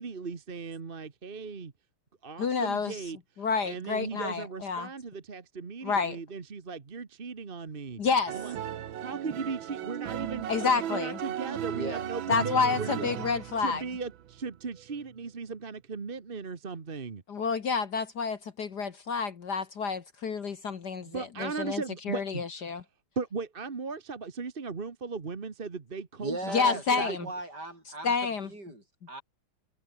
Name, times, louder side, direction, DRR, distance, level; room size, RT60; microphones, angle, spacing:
voice 1, 0.0-1.7 2.2-8.0 8.3-8.6 9.0-13.0 13.6-17.2 20.9-22.7 23.1-27.3, right 4 dB, 30° right, 1.3 m, -37 dB
voice 2, 2.4-3.0 3.4-4.9 5.8-6.2 8.0-8.4 10.5-11.2 12.3-13.8 17.3-22.8 26.4-27.3 28.0-28.5, left 5 dB, 50° left, 1.9 m, -29 dB
sound 1, 8.3-15.2, right 10 dB, 65° right, 1.8 m, -36 dB
voice 3, 11.7-12.1 12.9-13.1 26.2-29.2, right 2 dB, 50° right, 8.8 m, -38 dB
omnidirectional pair, 2.3 m